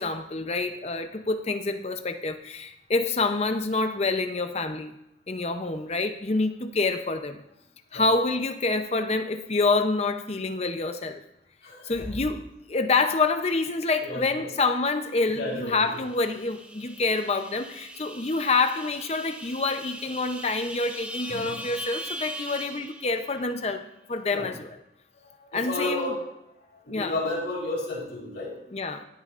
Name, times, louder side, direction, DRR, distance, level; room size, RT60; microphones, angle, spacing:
voice 1, 0.0-4.9 5.3-7.4 7.9-11.2 11.8-12.4 12.7-24.7 25.5-26.1 26.9-27.2 28.7-29.0, left 3 dB, 35° left, 7 dB, 0.6 m, -27 dB
voice 2, 11.6-12.1 14.0-14.5 15.4-16.0 21.3-21.6 24.3-24.5 25.2-26.2 26.9-28.5, left 2 dB, 70° left, -4 dB, 4.2 m, -32 dB
sound 1, 15.6-23.6, right 1 dB, 5° right, 0.5 m, -40 dB
17.5 x 8.8 x 2.5 m, 0.84 s
head